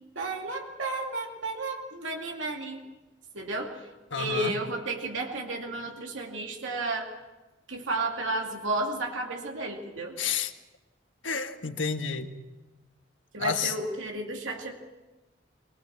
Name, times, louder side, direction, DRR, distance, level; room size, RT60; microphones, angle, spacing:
voice 1, 0.2-2.8 3.3-3.9 4.2-7.1 7.7-10.2 13.3-14.7, right 2 dB, 85° right, 1 dB, 2.5 m, -32 dB
voice 2, 4.1-4.6 10.2-10.5 11.2-12.3 13.4-13.7, left 6 dB, 75° left, 7 dB, 1.6 m, -30 dB
23.5 x 20.0 x 7.4 m, 1.1 s
head